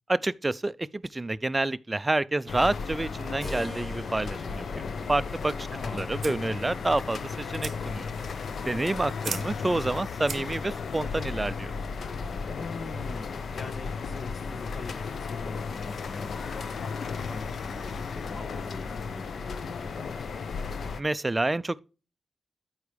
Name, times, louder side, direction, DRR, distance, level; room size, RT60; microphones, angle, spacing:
voice 1, 0.1-5.7 5.9-8.1 8.7-11.7 21.0-21.8, right 2 dB, 20° right, 0.3 m, -28 dB
sound 1, 2.5-21.0, left 5 dB, 70° left, 0.6 m, -35 dB
Keyboard (musical), 3.4-12.0, equal, 15° left, 1.7 m, -48 dB
voice 2, 5.7-6.1 12.6-20.7, left 3 dB, 50° left, 1.4 m, -43 dB
sound 2, 5.8-10.9, right 6 dB, 65° right, 0.7 m, -43 dB
13.5 x 4.5 x 3.3 m
wide cardioid pair, 135°, 0 cm